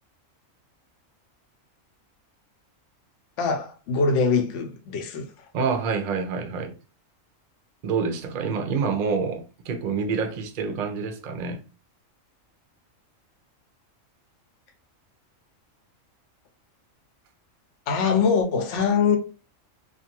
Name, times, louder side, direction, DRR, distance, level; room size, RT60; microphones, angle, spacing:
voice 1, 3.4-5.5 17.9-19.2, left 5 dB, 70° left, 0.9 m, -23 dB
voice 2, 5.5-6.7 7.8-11.6, right 5 dB, 60° right, 0.5 m, -27 dB
2.5 x 2.5 x 2.8 m
omnidirectional pair, 1.4 m